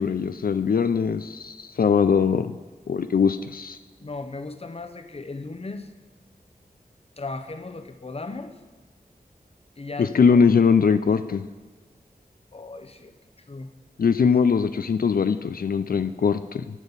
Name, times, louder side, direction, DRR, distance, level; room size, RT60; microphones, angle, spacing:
voice 1, 0.0-2.5 2.9-3.8 10.0-11.5 14.0-16.6, left 6 dB, 65° left, 11 dB, 0.4 m, -21 dB
voice 2, 4.0-5.9 7.2-8.6 9.8-10.4 12.5-13.1 13.5-13.7, left 3 dB, 40° left, 8 dB, 0.8 m, -36 dB
12.0 x 8.2 x 4.1 m, 1.4 s
wide cardioid pair, 75°, 16 cm